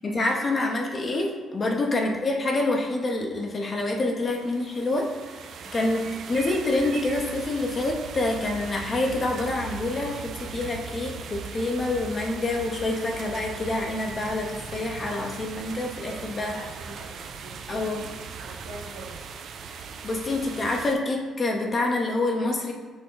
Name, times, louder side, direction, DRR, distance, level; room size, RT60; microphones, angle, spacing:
voice 1, 0.0-16.6 17.7-18.1 20.0-22.7, left 2 dB, 40° left, 1 dB, 0.7 m, -27 dB
sound 1, 4.3-21.0, right 6 dB, 65° right, 0.4 m, -39 dB
voice 2, 16.0-19.2, right 1 dB, 80° right, -1 dB, 0.9 m, -44 dB
6.1 x 2.2 x 3.8 m, 1.5 s
supercardioid pair, 70°, 0 cm